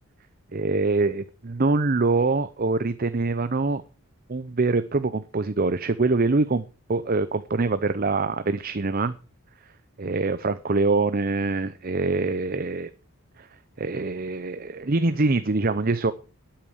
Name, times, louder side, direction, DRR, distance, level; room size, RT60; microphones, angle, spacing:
voice 1, 0.5-3.8 4.3-6.6 6.9-9.1 10.0-12.9 13.4-13.5 13.8-16.1, right 3 dB, 40° right, 12 dB, 0.6 m, -24 dB
12.5 x 8.9 x 6.4 m, 0.35 s
head